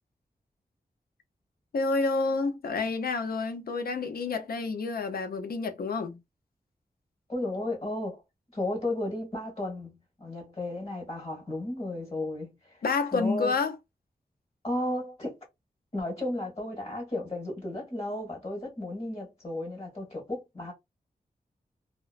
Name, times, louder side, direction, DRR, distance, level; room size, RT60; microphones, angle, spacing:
voice 1, 1.7-6.2 12.8-13.8, left 4 dB, 85° left, 0.6 m, -29 dB
voice 2, 7.3-8.2 8.5-12.8 13.1-13.6 14.6-15.4 15.9-20.7, left 1 dB, 40° left, 1.6 m, -34 dB
2.9 x 2.0 x 2.4 m
wide cardioid pair, 75°, 15 cm